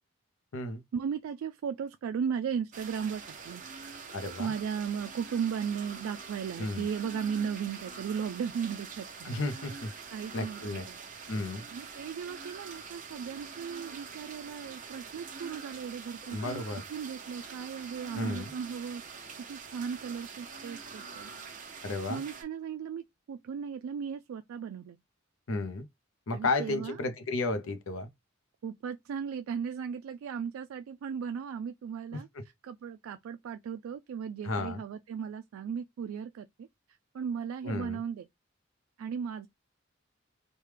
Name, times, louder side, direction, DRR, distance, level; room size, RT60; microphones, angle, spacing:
voice 1, 0.9-3.6 4.4-9.3 10.1-11.0 11.7-16.6 16.9-19.0 19.5-21.3 22.1-25.0 26.3-27.0 28.6-32.3 32.6-36.5 37.1-38.2 39.0-39.5, right 7 dB, 85° right, 0.3 m, -36 dB
sound 1, 2.7-22.4, right 5 dB, 40° right, 0.7 m, -45 dB
voice 2, 4.1-4.5 6.6-6.9 9.2-9.9 10.3-10.9 11.3-11.6 16.3-16.8 18.1-18.5 21.8-22.2 25.5-25.9 26.3-28.1 32.1-32.4 34.4-34.8 37.6-38.0, left 2 dB, 75° left, 0.6 m, -33 dB
3.1 x 2.2 x 3.2 m
head